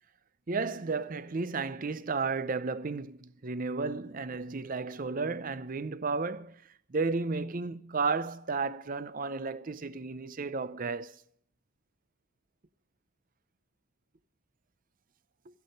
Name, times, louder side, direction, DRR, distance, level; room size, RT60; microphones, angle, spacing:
voice 1, 0.5-6.6 6.9-11.2, right 4 dB, 40° right, 0.6 m, -33 dB
14.0 x 10.5 x 5.3 m
head